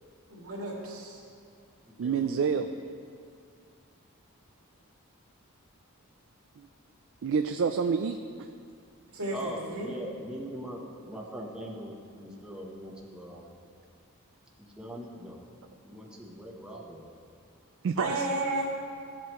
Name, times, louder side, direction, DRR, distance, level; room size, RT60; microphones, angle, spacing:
voice 1, 0.3-1.2 9.1-9.9 18.0-18.7, right 2 dB, 80° right, -4 dB, 2.5 m, -33 dB
voice 2, 2.0-2.7 6.6-6.7 7.2-8.5 17.8-18.3, right 6 dB, 60° right, 7 dB, 0.4 m, -28 dB
voice 3, 9.3-13.5 14.6-15.4 15.8-17.0, equal, 5° right, -3 dB, 1.0 m, -41 dB
15.5 x 7.6 x 3.1 m, 2.3 s
head